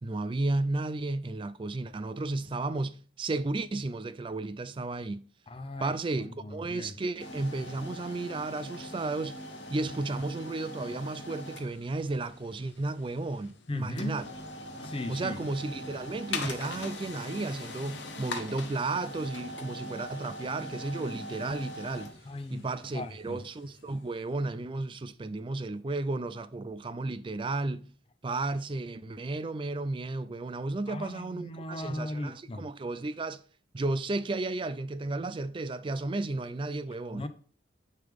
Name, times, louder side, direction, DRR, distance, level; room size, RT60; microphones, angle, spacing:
voice 1, 0.0-5.2 5.8-9.4 9.7-14.2 15.1-22.1 22.5-27.9 28.2-33.4 33.7-37.3, right 2 dB, 25° right, 0.3 m, -33 dB
voice 2, 5.5-7.0 13.7-14.3 14.8-15.4 22.2-22.7 22.9-23.4 30.9-32.7 37.1-37.3, left 1 dB, 30° left, 0.5 m, -38 dB
sound 1, 7.2-24.1, left 2 dB, 65° left, 1.0 m, -42 dB
9.4 x 3.3 x 3.5 m
head